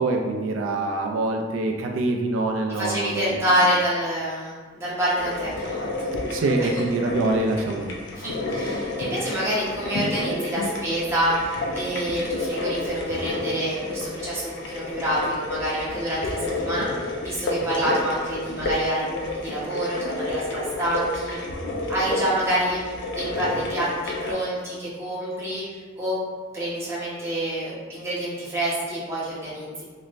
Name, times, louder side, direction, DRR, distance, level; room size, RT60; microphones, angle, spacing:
voice 1, 0.0-3.4 6.3-8.0, right 2 dB, 85° right, 2 dB, 0.3 m, -25 dB
voice 2, 2.7-6.1 6.6-6.7 8.2-21.4 21.9-26.2 26.5-29.8, right 1 dB, 15° right, -9 dB, 1.0 m, -27 dB
sound 1, 5.2-24.3, left 2 dB, 65° left, 0.5 m, -30 dB
3.1 x 3.0 x 2.5 m, 1.4 s
head